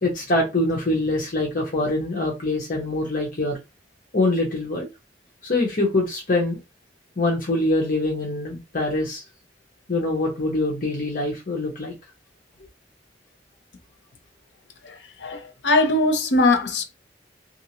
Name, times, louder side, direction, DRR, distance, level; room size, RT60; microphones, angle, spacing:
voice 1, 0.0-3.6 4.1-4.9 5.4-6.6 7.2-9.2 9.9-11.9, left 2 dB, 50° left, 0.9 m, -24 dB
voice 2, 14.8-16.8, left 2 dB, 85° left, 0.7 m, -21 dB
3.2 x 2.6 x 2.9 m
head